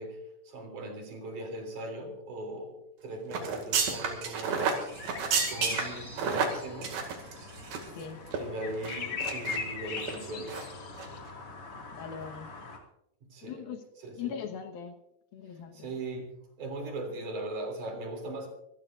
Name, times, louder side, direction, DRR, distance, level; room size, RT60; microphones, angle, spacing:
voice 1, 0.0-4.7 5.5-7.0 8.4-10.6 13.2-13.7 14.0-14.4 15.5-18.5, right 1 dB, 60° right, 3 dB, 4.4 m, -39 dB
sound 1, 3.3-8.0 8.3-8.4 8.8-9.6 10.0-10.2 10.5-10.7 10.9-11.1, right 6 dB, 85° right, 4.1 m, -31 dB
sound 2, 4.9-12.8, left 5 dB, 45° left, 2.8 m, -40 dB
voice 2, 11.9-12.5 13.4-13.8 14.2-15.0 15.3-15.9, left 8 dB, 80° left, 6 dB, 3.1 m, -40 dB
25.5 x 15.0 x 2.6 m, 0.83 s
omnidirectional pair, 4.2 m